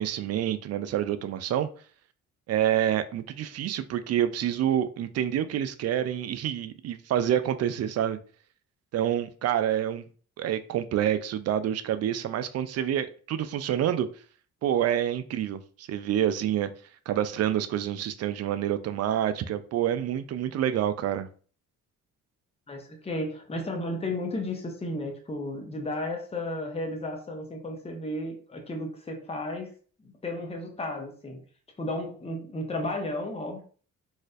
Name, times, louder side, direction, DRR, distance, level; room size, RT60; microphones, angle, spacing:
voice 1, 0.0-1.7 2.5-8.2 8.9-10.0 10.4-14.1 14.6-16.7 17.1-21.3, right 10 dB, 55° right, 11 dB, 0.4 m, -27 dB
voice 2, 22.7-29.7 30.0-31.4 31.8-33.6, left 1 dB, 20° left, 2 dB, 0.8 m, -33 dB
4.1 x 2.5 x 2.4 m, 0.42 s
cardioid pair, 90°, 30 cm